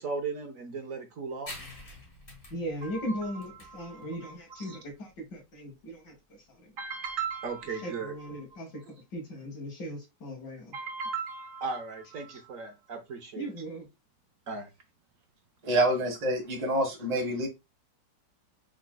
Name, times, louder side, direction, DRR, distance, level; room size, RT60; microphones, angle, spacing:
voice 1, 0.0-1.5 2.8-3.2 3.7-4.3 4.7-4.8 6.8-8.4 10.7-13.5 14.5-14.7, right 5 dB, 55° right, 1.1 m, -36 dB
sound 1, 1.5-8.6, left 2 dB, 30° left, 1.7 m, -50 dB
voice 2, 2.5-6.7 7.7-8.8 9.1-10.7 13.4-13.9, equal, 75° left, 2.3 m, -38 dB
voice 3, 15.6-17.5, right 1 dB, 25° right, 1.3 m, -27 dB
5.0 x 4.8 x 2.2 m
omnidirectional pair, 1.9 m